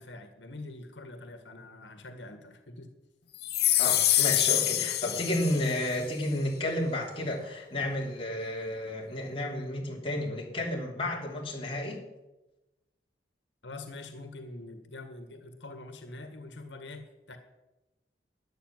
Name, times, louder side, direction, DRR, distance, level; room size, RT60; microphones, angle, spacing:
voice 1, 0.0-2.9 13.6-17.4, left 2 dB, 90° left, 7 dB, 1.8 m, -44 dB
sound 1, 3.4-6.0, left 14 dB, 60° left, 1.1 m, -26 dB
voice 2, 3.8-12.1, left 1 dB, 30° left, -1 dB, 3.4 m, -32 dB
12.5 x 10.5 x 9.6 m, 1.0 s
head